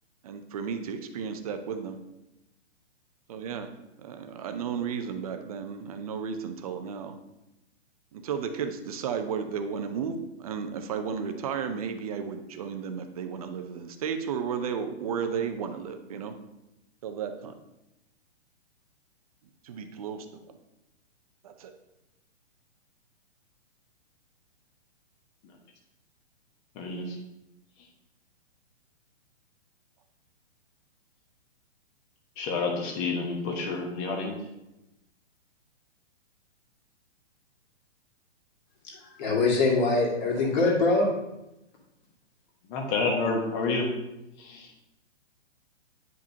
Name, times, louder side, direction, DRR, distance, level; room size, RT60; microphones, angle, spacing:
voice 1, 0.2-2.0 3.3-3.7 4.0-7.2 8.1-16.3 17.0-17.5 19.6-20.4 21.4-21.7, right 6 dB, 30° right, 8 dB, 0.5 m, -33 dB
voice 2, 26.7-27.2 32.4-34.4 42.7-43.9 44.4-44.7, left 3 dB, 25° left, 1 dB, 1.0 m, -29 dB
voice 3, 39.2-41.1, left 3 dB, 40° left, -2 dB, 2.0 m, -23 dB
9.1 x 5.0 x 2.7 m, 0.92 s
hypercardioid pair, 155°, 35 cm